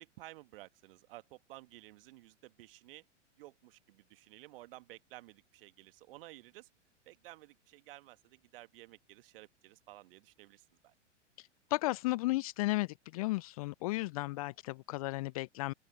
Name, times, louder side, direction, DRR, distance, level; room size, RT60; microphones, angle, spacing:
voice 1, 0.0-3.0 3.4-6.7 7.0-10.9, right 17 dB, 50° right, 1.7 m, -54 dB
voice 2, 11.4-15.7, left 20 dB, 30° left, 0.4 m, -34 dB
open air
figure-of-eight pair, 105°, 36 cm